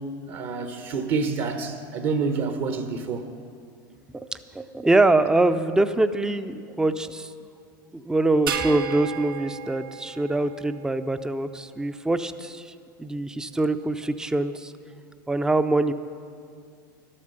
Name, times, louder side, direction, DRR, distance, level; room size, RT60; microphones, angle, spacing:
voice 1, 0.3-3.3, right 4 dB, 50° right, 7 dB, 0.9 m, -28 dB
voice 2, 4.5-7.3 7.9-12.7 13.0-14.7 15.3-15.9, right 2 dB, 5° right, 11 dB, 0.5 m, -24 dB
sound 1, 8.5-11.0, right 8 dB, 85° right, 0.7 m, -33 dB
12.0 x 8.6 x 6.7 m, 2.4 s
hypercardioid pair, 100°, 11 cm